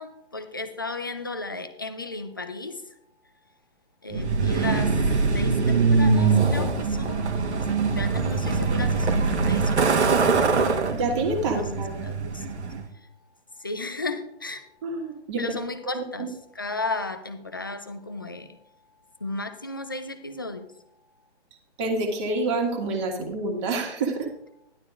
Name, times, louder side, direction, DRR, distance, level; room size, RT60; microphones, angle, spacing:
voice 1, 0.0-2.8 4.0-4.9 5.3-10.3 11.5-11.6 12.0-12.2 13.6-14.6 15.4-18.5 19.2-20.7, left 2 dB, 20° left, 9 dB, 0.4 m, -34 dB
Truck, 4.1-12.8, right 4 dB, 65° right, 1.4 m, -23 dB
voice 2, 10.7-11.9 14.8-15.6 15.9-16.3 21.8-24.3, right 2 dB, 25° right, 3 dB, 1.8 m, -28 dB
13.5 x 11.5 x 2.5 m, 0.75 s
figure-of-eight pair, 140°, 36 cm